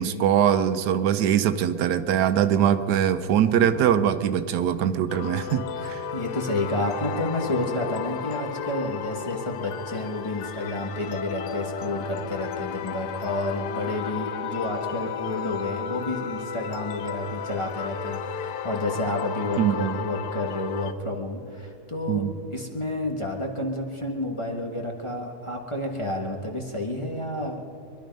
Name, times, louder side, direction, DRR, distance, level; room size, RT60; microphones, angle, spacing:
voice 1, 0.0-6.0 19.6-20.0 22.1-22.3, right 9 dB, 85° right, 10 dB, 1.3 m, -22 dB
sound 1, 5.1-20.9, left 8 dB, 80° left, 1.2 m, -34 dB
voice 2, 5.7-27.6, left 1 dB, 20° left, 1 dB, 1.3 m, -30 dB
23.5 x 11.5 x 5.3 m, 2.4 s
omnidirectional pair, 1.7 m